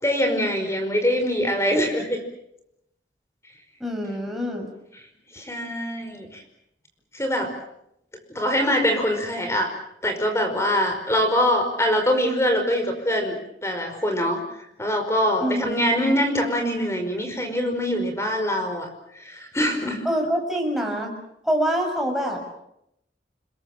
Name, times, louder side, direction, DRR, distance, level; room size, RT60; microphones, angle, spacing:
voice 1, 0.0-2.2 5.3-6.4 7.1-7.5 8.3-9.7 10.0-13.3 13.6-14.4 14.8-18.9 19.1-20.1, equal, 15° left, 5 dB, 5.0 m, -23 dB
voice 2, 3.8-4.7 15.4-15.8 20.1-21.1 21.4-22.4, equal, ahead, 0 dB, 6.9 m, -25 dB
29.5 x 21.5 x 7.4 m, 0.79 s
head